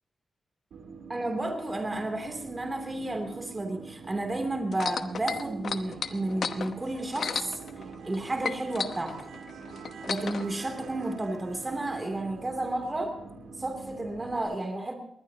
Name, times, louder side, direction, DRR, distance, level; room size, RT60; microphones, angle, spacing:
sound 1, 0.7-14.4, right 5 dB, 90° right, 3.2 m, -44 dB
voice 1, 1.1-7.6 8.0-9.2 10.1-13.2 13.6-14.9, right 2 dB, 25° right, 4 dB, 3.0 m, -32 dB
sound 2, 4.7-8.2 8.4-10.5 11.2-11.3, left 6 dB, 65° left, 1.1 m, -33 dB
21.5 x 20.0 x 2.9 m, 0.74 s
wide cardioid pair, 100°, 0 cm